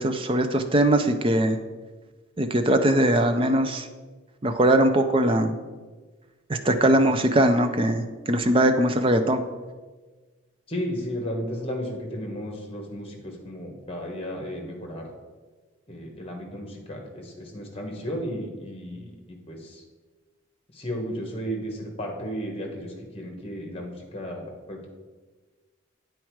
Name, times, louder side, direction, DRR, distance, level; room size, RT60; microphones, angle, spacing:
voice 1, 0.0-1.6 2.4-3.9 4.4-5.6 6.5-9.4, right 1 dB, 25° right, 7 dB, 0.5 m, -21 dB
voice 2, 10.7-15.1 15.9-19.8 20.7-24.9, equal, 30° left, 2 dB, 1.3 m, -34 dB
8.8 x 4.6 x 4.7 m, 1.3 s
head